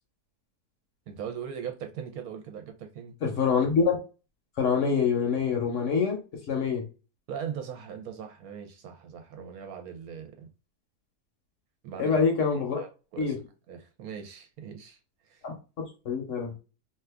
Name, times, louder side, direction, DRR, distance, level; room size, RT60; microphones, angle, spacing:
voice 1, 1.1-3.1 7.3-10.5 11.8-12.2 12.5-13.3 13.7-15.0 15.3-15.4, right 8 dB, 70° right, 1.1 m, -40 dB
voice 2, 3.2-4.0 4.6-6.2 6.5-6.8 12.0-12.8 13.2-13.4 15.4-15.6 16.0-16.6, left 5 dB, 55° left, 1.0 m, -25 dB
2.8 x 2.4 x 3.3 m
omnidirectional pair, 1.7 m